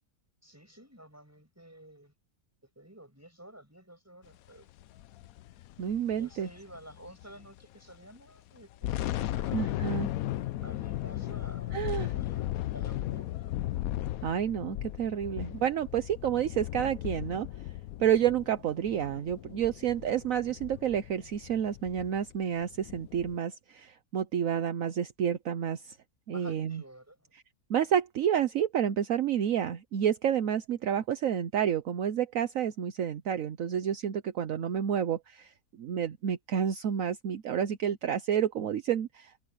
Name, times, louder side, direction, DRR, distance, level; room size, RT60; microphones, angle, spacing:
voice 1, 0.4-2.1 2.6-4.7 6.1-9.7 10.6-13.6 19.0-19.2 26.3-27.2 34.5-34.8, right 1 dB, 10° right, 6.4 m, -51 dB
big-thunder, 4.8-7.6 7.9-8.0 8.6-23.4, left 14 dB, 75° left, 1.0 m, -36 dB
voice 2, 5.8-6.5 9.5-10.1 11.7-12.1 14.2-17.5 18.0-26.0 26.3-26.8 27.7-35.5 35.8-39.5, right 9 dB, 65° right, 1.2 m, -29 dB
omnidirectional pair, 1.6 m